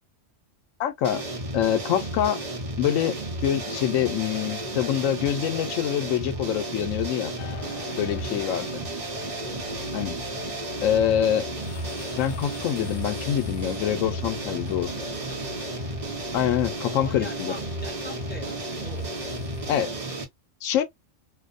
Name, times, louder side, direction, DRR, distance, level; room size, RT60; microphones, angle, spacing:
voice 1, 0.8-1.2 1.5-2.4 2.8-7.3 8.0-8.8 9.9-10.2 10.8-11.5 12.2-14.9 16.3-17.6 19.7-19.9 20.6-20.8, left 10 dB, 80° left, 0.9 m, -25 dB
sound 1, 1.0-20.2, right 2 dB, 40° right, 0.7 m, -33 dB
sound 2, 7.4-19.8, left 6 dB, 65° left, 0.5 m, -41 dB
voice 2, 9.3-9.6 14.7-15.4 16.9-19.2, equal, 10° left, 0.8 m, -43 dB
2.5 x 2.1 x 2.4 m
omnidirectional pair, 1.3 m